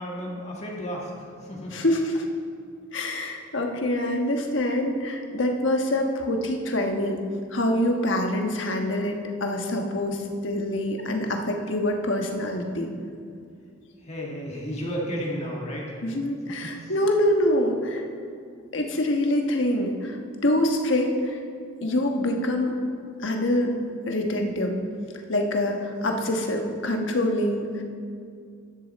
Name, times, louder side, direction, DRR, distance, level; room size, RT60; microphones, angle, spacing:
voice 1, 0.0-1.7 14.0-15.9 16.6-16.9, equal, 35° left, -3 dB, 1.6 m, -33 dB
voice 2, 1.7-2.2 2.9-7.2 7.5-12.9 16.0-18.0 18.7-21.4 21.8-22.7 23.2-23.7 24.1-24.8 25.3-27.8, left 1 dB, 70° left, 3 dB, 1.3 m, -25 dB
12.5 x 10.0 x 4.2 m, 2.3 s
head